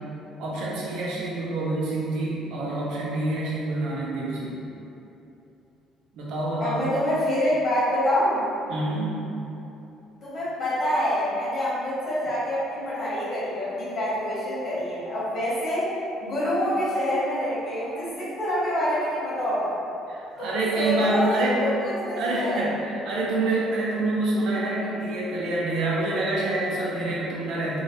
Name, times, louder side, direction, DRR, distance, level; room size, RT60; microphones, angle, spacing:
voice 1, 0.4-4.5 6.1-6.8 8.7-9.2 20.1-21.6 22.2-27.8, right 2 dB, 75° right, -5 dB, 0.6 m, -27 dB
voice 2, 6.6-8.4 10.2-15.9 16.2-19.7 20.4-22.7, equal, 40° left, -10 dB, 1.4 m, -26 dB
3.2 x 2.5 x 2.8 m, 2.9 s
cardioid pair, 95°, 0 cm